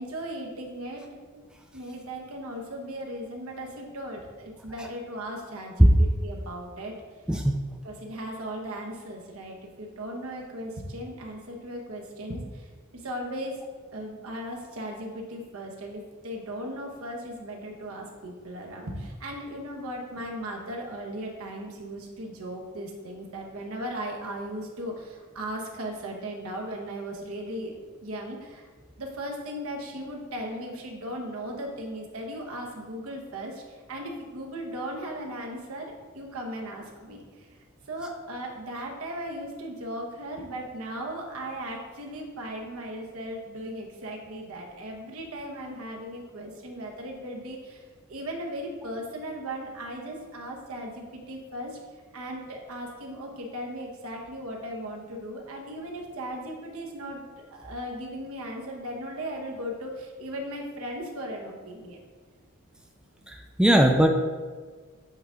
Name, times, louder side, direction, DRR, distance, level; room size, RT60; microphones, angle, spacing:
voice 1, 0.0-1.4 1.7-7.0 7.8-13.6 13.9-27.7 28.0-28.7 29.0-37.5 37.9-51.8 52.1-62.0, equal, 70° right, 1 dB, 1.0 m, -37 dB
voice 2, 63.3-64.1, right 1 dB, 5° right, 3 dB, 0.3 m, -19 dB
7.8 x 3.8 x 3.6 m, 1.5 s
head